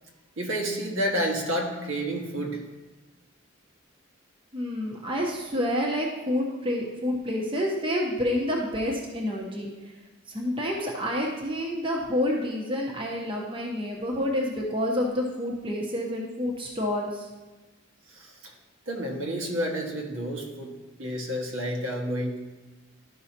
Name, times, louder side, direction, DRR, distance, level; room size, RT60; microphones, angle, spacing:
voice 1, 0.4-2.6 18.1-18.5 18.9-20.7 21.0-22.5, equal, 75° right, -1 dB, 1.5 m, -30 dB
voice 2, 4.5-9.7 10.3-17.3, left 1 dB, 25° right, -1 dB, 0.9 m, -28 dB
12.5 x 5.5 x 2.8 m, 1.2 s
head